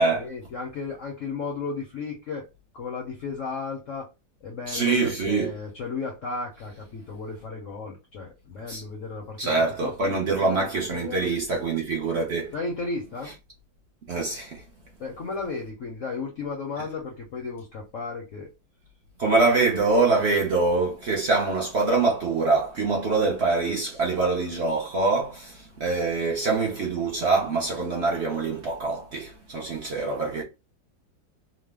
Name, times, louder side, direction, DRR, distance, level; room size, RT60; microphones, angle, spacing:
voice 1, 0.0-2.5 2.7-4.1 4.4-9.5 9.8-11.3 12.5-13.3 15.0-18.5, left 4 dB, 65° left, 0.7 m, -34 dB
voice 2, 4.7-5.5 8.7-8.8 9.4-12.5 14.1-14.6 19.2-30.4, right 3 dB, 70° right, 0.6 m, -24 dB
3.0 x 2.0 x 3.3 m
omnidirectional pair, 2.1 m